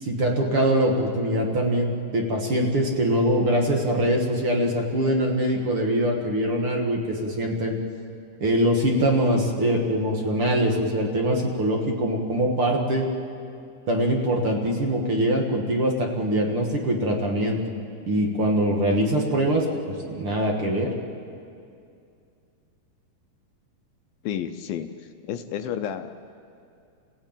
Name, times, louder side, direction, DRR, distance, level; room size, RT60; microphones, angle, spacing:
voice 1, 0.0-7.7 8.4-13.1 13.9-17.6 18.1-20.9, right 1 dB, 40° right, 0 dB, 2.3 m, -23 dB
voice 2, 24.2-26.1, left 9 dB, 75° left, 8 dB, 2.4 m, -31 dB
30.0 x 16.0 x 9.0 m, 2.5 s
omnidirectional pair, 4.6 m